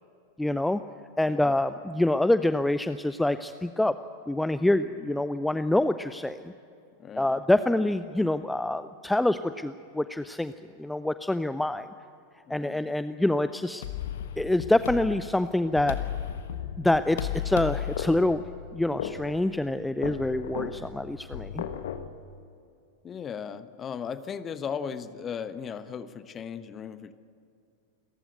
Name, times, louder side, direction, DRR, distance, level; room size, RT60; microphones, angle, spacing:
voice 1, 0.4-0.8 1.2-3.9 4.3-6.5 7.2-10.5 10.8-11.9 12.5-13.8 14.4-16.0 16.8-18.4 18.7-21.6, left 1 dB, 5° left, 13 dB, 0.5 m, -26 dB
voice 2, 1.3-1.6 7.0-7.4 12.5-13.0 23.0-27.1, left 7 dB, 25° left, 13 dB, 1.1 m, -37 dB
sound 1, 13.8-22.1, left 9 dB, 60° left, 1.4 m, -35 dB
29.0 x 15.0 x 8.0 m, 2.5 s
figure-of-eight pair, 90°, 0 cm